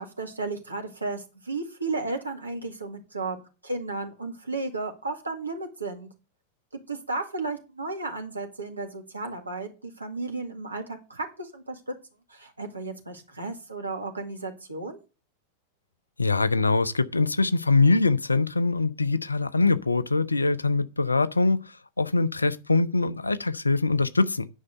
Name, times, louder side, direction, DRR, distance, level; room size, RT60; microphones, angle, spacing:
voice 1, 0.0-3.4 3.6-6.1 6.9-11.9 12.3-15.0, right 3 dB, 80° right, 2.0 m, -34 dB
voice 2, 16.2-24.5, left 3 dB, 80° left, 0.6 m, -23 dB
9.8 x 5.6 x 6.6 m
figure-of-eight pair, 90°, 0 cm